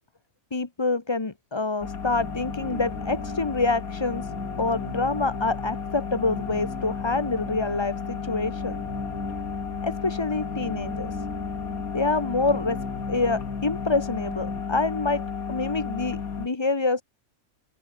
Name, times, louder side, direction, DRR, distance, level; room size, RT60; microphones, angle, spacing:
voice 1, 0.5-4.3 4.6-8.9 9.8-11.2 11.9-12.8 13.1-17.0, left 3 dB, 20° left, 1.1 m, -27 dB
sound 1, 1.8-16.5, left 6 dB, 80° left, 2.3 m, -33 dB
sound 2, 2.0-14.6, right 1 dB, 10° right, 2.8 m, -41 dB
open air
omnidirectional pair, 1.5 m